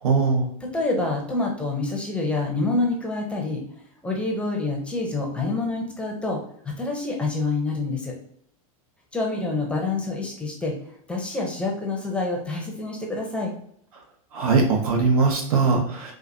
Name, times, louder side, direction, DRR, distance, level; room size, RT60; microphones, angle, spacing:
voice 1, 0.0-0.5 14.3-16.1, right 4 dB, 90° right, 1 dB, 1.1 m, -20 dB
voice 2, 0.6-3.6 4.0-6.4 6.6-8.1 9.1-10.7 11.1-13.5, left 3 dB, 5° left, 0 dB, 0.5 m, -27 dB
4.1 x 2.4 x 2.6 m, 0.67 s
supercardioid pair, 155°, 18 cm